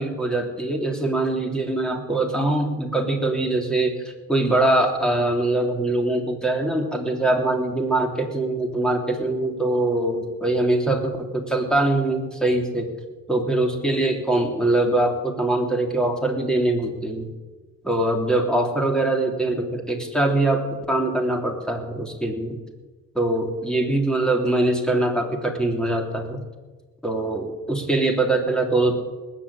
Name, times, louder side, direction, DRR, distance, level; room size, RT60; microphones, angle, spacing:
voice 1, 0.0-3.9 4.3-12.9 13.3-17.3 17.8-22.6 23.1-26.4 27.0-29.0, right 2 dB, ahead, 2 dB, 3.3 m, -23 dB
19.5 x 8.6 x 8.5 m, 1.3 s
cardioid pair, 90°, 30 cm